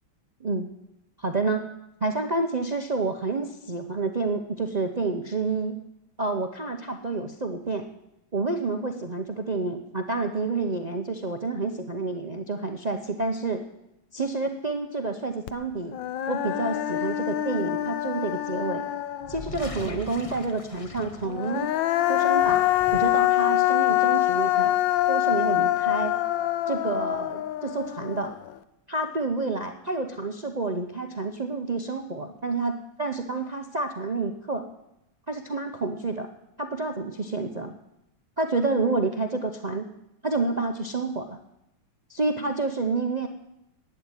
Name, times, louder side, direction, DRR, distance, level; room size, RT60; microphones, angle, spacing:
voice 1, 1.2-1.7 2.0-5.8 6.2-7.8 8.3-13.6 14.1-16.0 16.3-18.8 19.3-21.7 22.1-22.6 22.9-24.8 25.1-26.1 26.7-28.3 28.9-34.7 35.3-36.3 36.6-37.7 38.4-39.9 40.2-41.4 42.1-43.3, right 3 dB, 60° right, 6 dB, 0.4 m, -29 dB
Human voice, 15.5-15.6 15.9-19.6 21.2-28.5, left 14 dB, 75° left, 1.3 m, -25 dB
sound 1, 19.2-21.8 22.2-23.4, left 3 dB, 40° left, 0.4 m, -40 dB
11.5 x 9.0 x 9.7 m, 0.85 s
omnidirectional pair, 2.2 m